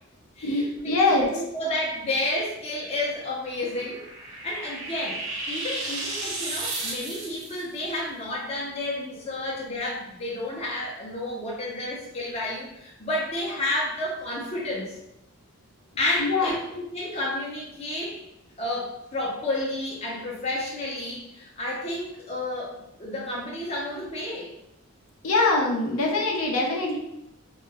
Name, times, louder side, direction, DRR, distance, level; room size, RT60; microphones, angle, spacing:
voice 1, 0.4-1.3 16.2-16.6 25.2-27.0, left 2 dB, 75° left, -1 dB, 0.5 m, -23 dB
voice 2, 0.9-4.0 4.4-15.0 16.0-18.2 18.6-24.5, left 1 dB, 30° left, -4 dB, 0.5 m, -31 dB
sound 1, 3.5-7.6, right 2 dB, 70° right, 0.6 m, -33 dB
2.2 x 2.0 x 3.3 m, 0.85 s
head